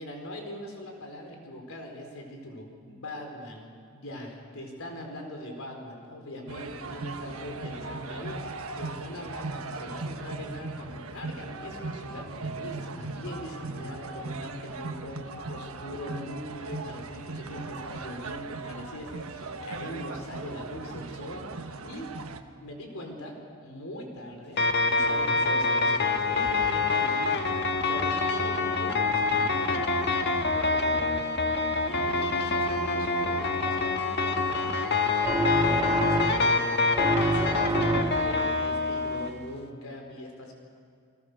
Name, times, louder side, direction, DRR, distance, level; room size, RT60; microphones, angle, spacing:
voice 1, 0.0-22.1 22.6-29.9 30.5-34.7 35.6-40.5, left 1 dB, 70° left, 2 dB, 4.3 m, -41 dB
sound 1, 6.5-22.4, right 3 dB, 75° right, 1.4 m, -38 dB
sound 2, 24.6-39.3, left 3 dB, 50° left, 1.6 m, -26 dB
sound 3, 35.2-36.6 36.9-38.5, right 2 dB, 20° right, 0.7 m, -27 dB
30.0 x 20.5 x 6.8 m, 2.2 s
head